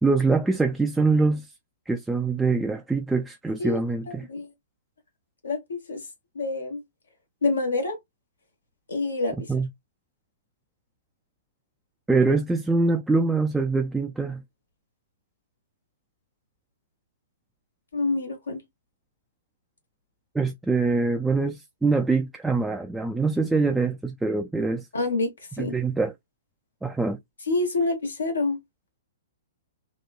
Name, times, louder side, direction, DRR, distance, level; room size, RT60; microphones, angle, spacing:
voice 1, 0.0-1.5 1.9-4.3 9.3-9.7 12.1-14.4 20.3-24.9 25.6-26.1 26.8-27.2, right 3 dB, 5° right, 0.3 m, -24 dB
voice 2, 4.1-4.5 5.4-6.0 6.3-6.8 7.4-8.0 8.9-9.5 17.9-18.6 24.9-25.3 25.6-25.7 27.5-28.6, left 3 dB, 80° left, 1.1 m, -27 dB
2.9 x 2.2 x 2.3 m
figure-of-eight pair, 115°, 0 cm